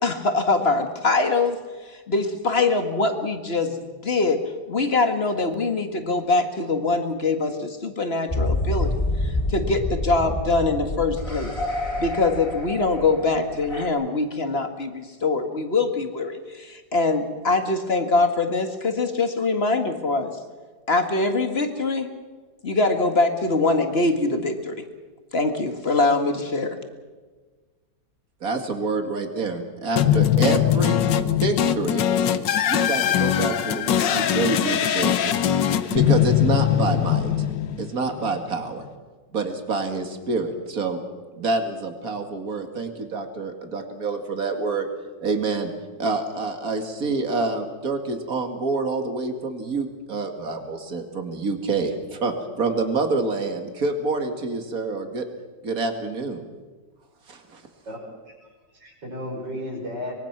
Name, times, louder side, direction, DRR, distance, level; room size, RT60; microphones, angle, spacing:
voice 1, 0.0-1.6 1.9-11.6 12.0-20.4 20.9-22.1 22.6-24.9 25.3-26.8, left 3 dB, 35° left, 6 dB, 2.0 m, -23 dB
sound 1, 8.3-13.9, left 1 dB, 15° left, 3.5 m, -27 dB
voice 2, 28.4-32.0 32.7-35.4 35.9-37.3 37.8-38.8 39.3-41.0 41.4-44.9 45.2-45.7 46.0-55.2 55.6-56.4 57.3-57.6, right 3 dB, 55° right, 5 dB, 2.7 m, -27 dB
sound 2, 30.0-38.2, left 10 dB, 85° left, 1.7 m, -21 dB
voice 3, 57.9-58.5 58.7-60.1, left 1 dB, 80° right, -2 dB, 6.6 m, -34 dB
24.5 x 22.5 x 6.0 m, 1.4 s
omnidirectional pair, 1.9 m